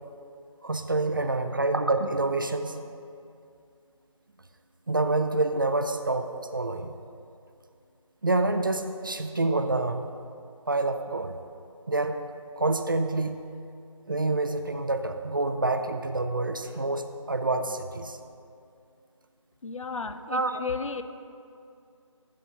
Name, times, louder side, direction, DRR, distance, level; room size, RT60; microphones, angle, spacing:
voice 1, 0.6-2.8 4.9-6.9 8.2-10.1 10.7-11.4 11.9-12.2 12.6-13.4 14.1-18.2 20.3-20.6, right 2 dB, 40° right, 8 dB, 0.4 m, -27 dB
voice 2, 19.6-21.0, left 5 dB, 70° left, 10 dB, 0.6 m, -33 dB
14.5 x 7.4 x 2.8 m, 2.4 s
figure-of-eight pair, 170°, 17 cm